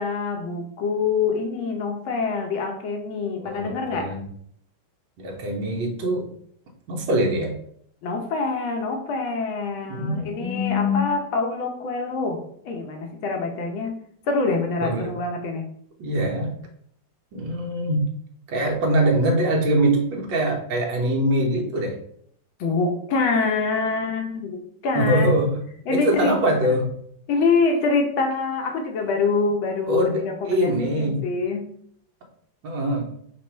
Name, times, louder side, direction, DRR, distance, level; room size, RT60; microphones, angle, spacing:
voice 1, 0.0-4.1 8.0-15.7 22.6-24.6 24.8-25.3 25.9-26.4 26.7-26.8 27.3-31.7, left 4 dB, 75° left, 3 dB, 1.6 m, -25 dB
voice 2, 3.4-4.2 5.2-6.3 6.9-7.5 9.9-11.1 14.8-15.1 16.0-16.5 17.3-18.0 18.5-22.0 24.9-25.6 25.9-26.9 29.9-30.2 30.5-31.2 32.6-33.1, right 1 dB, 70° right, 0 dB, 1.5 m, -23 dB
5.2 x 2.4 x 4.3 m, 0.65 s
omnidirectional pair, 2.3 m